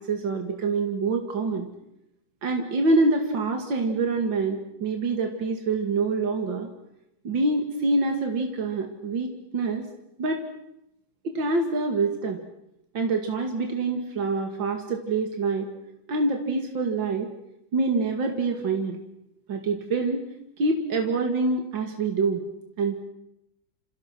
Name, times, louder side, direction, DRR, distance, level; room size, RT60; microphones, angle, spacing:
voice 1, 0.0-1.7 2.4-6.7 7.2-9.8 10.2-10.4 11.2-12.4 12.9-15.7 16.1-17.3 17.7-19.0 19.5-20.2 20.6-22.5 22.8-23.0, right 3 dB, 75° right, 4 dB, 3.0 m, -26 dB
28.5 x 28.5 x 6.2 m, 0.81 s
omnidirectional pair, 2.1 m